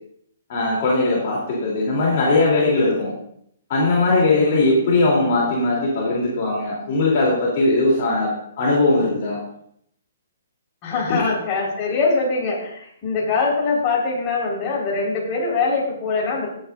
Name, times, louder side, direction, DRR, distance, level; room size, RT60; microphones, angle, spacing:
voice 1, 0.5-3.1 3.7-8.3 8.6-9.4 11.1-11.2, left 2 dB, 45° left, -4 dB, 3.4 m, -19 dB
voice 2, 10.8-16.5, left 4 dB, 30° left, -4 dB, 4.7 m, -23 dB
16.5 x 8.9 x 2.6 m, 0.69 s
hypercardioid pair, 145°, 0 cm